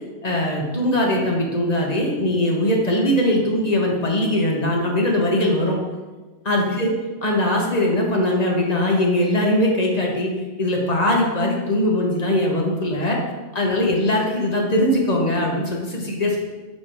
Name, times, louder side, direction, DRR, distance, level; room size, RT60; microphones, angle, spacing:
voice 1, 0.2-5.8 6.4-6.9 7.2-10.3 10.6-13.2 13.5-16.4, left 1 dB, 35° left, -1 dB, 0.8 m, -21 dB
5.1 x 4.5 x 4.3 m, 1.3 s
omnidirectional pair, 1.5 m